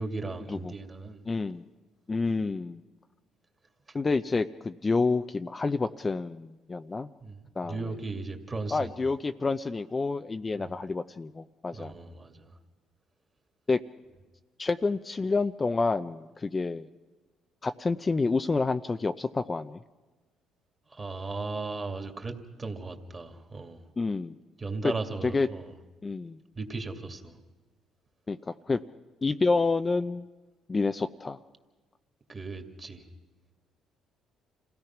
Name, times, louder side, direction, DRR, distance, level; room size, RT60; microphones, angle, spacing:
voice 1, 0.0-1.2 3.9-4.0 7.2-8.9 10.5-10.7 11.7-12.6 20.9-23.9 24.6-25.7 26.6-27.4 32.3-33.0, right 3 dB, 30° right, 5 dB, 2.4 m, -37 dB
voice 2, 1.3-1.6 2.1-2.8 3.9-7.1 7.6-7.8 8.7-11.9 13.7-13.8 14.6-16.9 17.6-19.8 24.0-24.4 25.2-25.5 26.0-26.4 28.3-28.8 29.2-30.3 30.7-31.4, left 3 dB, 25° left, 9 dB, 0.6 m, -28 dB
27.0 x 16.5 x 6.0 m, 1.2 s
supercardioid pair, 75°, 0 cm